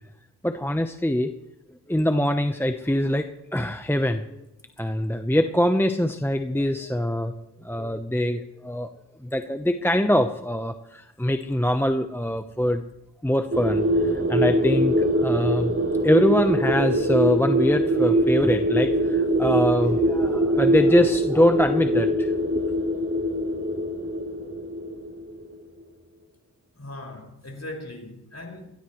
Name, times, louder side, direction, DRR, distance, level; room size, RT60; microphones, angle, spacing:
voice 1, 0.4-1.3 1.9-4.4 4.8-7.3 7.6-8.9 9.2-12.8 13.2-15.7 16.0-22.3, left 1 dB, 5° left, 1.0 m, -23 dB
sound 1, 13.5-25.4, right 1 dB, 35° right, 3.2 m, -23 dB
voice 2, 26.7-28.7, left 1 dB, 40° left, 5.7 m, -40 dB
23.5 x 17.5 x 3.2 m
cardioid pair, 50°, 41 cm